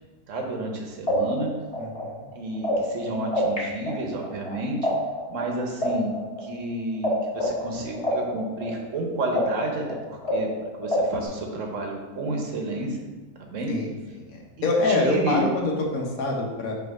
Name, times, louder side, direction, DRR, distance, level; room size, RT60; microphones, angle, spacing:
voice 1, 0.3-1.5 2.3-4.8 5.3-10.5 10.8-13.1 13.4-13.8 14.6-15.4, right 2 dB, 60° right, 1 dB, 1.3 m, -31 dB
sound 1, 0.7-0.8 1.1-3.6 3.9-7.1 7.4-11.3, left 1 dB, 25° left, 1.4 m, -28 dB
voice 2, 1.8-2.3 13.7-16.7, left 2 dB, 75° left, 0 dB, 1.5 m, -26 dB
5.9 x 3.1 x 5.2 m, 1.2 s
omnidirectional pair, 1.5 m